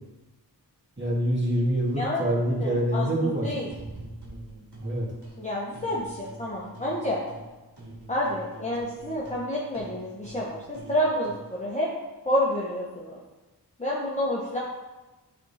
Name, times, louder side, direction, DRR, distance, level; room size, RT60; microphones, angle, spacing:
voice 1, 1.0-3.5 4.8-5.1, right 1 dB, 25° right, -5 dB, 2.1 m, -25 dB
voice 2, 2.0-2.3 2.6-3.7 5.4-7.2 8.1-11.9 12.2-13.2 13.8-14.6, left 1 dB, 15° left, -5 dB, 1.1 m, -29 dB
sound 1, 3.7-5.4 5.7-7.5 7.8-11.5, right 2 dB, 70° right, 2.0 m, -44 dB
9.2 x 3.6 x 4.2 m, 1.1 s
wide cardioid pair, 45°, 41 cm